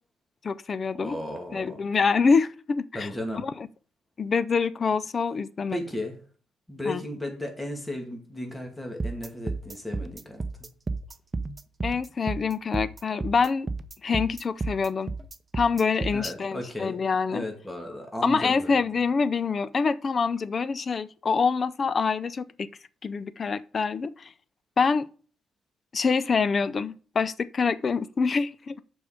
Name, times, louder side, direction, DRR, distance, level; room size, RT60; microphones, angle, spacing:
voice 1, 0.4-1.2 1.5-3.1 3.4-3.5 4.2-5.8 6.9-7.0 11.8-13.7 14.0-15.1 15.5-17.4 18.2-22.7 23.0-24.3 24.8-25.1 25.9-28.8, left 5 dB, 40° left, 0.5 m, -25 dB
voice 2, 1.0-1.8 2.9-3.5 5.7-6.2 6.7-10.4 16.1-17.0 17.3-18.8, left 1 dB, 10° left, 2.3 m, -35 dB
sound 1, 9.0-16.3, right 3 dB, 25° right, 0.8 m, -32 dB
6.9 x 5.4 x 6.5 m
cardioid pair, 90°, 0 cm